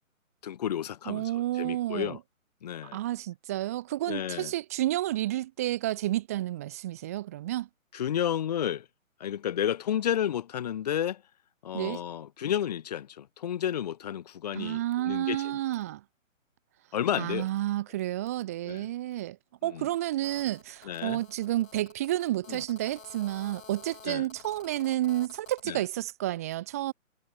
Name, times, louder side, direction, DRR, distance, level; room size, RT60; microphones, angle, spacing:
voice 1, 0.4-1.3 1.6-2.2 2.6-3.0 4.1-4.5 7.9-8.8 9.2-11.2 11.6-15.6 16.9-17.5 18.6-18.9 19.6-19.9 20.8-21.2 22.5-22.6 24.0-24.3 25.7-25.8, left 10 dB, 30° left, 3.1 m, -31 dB
voice 2, 1.1-2.2 2.9-7.7 11.7-12.0 14.5-16.0 17.2-19.4 19.6-26.9, right 14 dB, 10° right, 1.2 m, -30 dB
Telephone, 20.2-25.6, left 5 dB, 70° left, 7.4 m, -51 dB
hypercardioid pair, 175°, 41 cm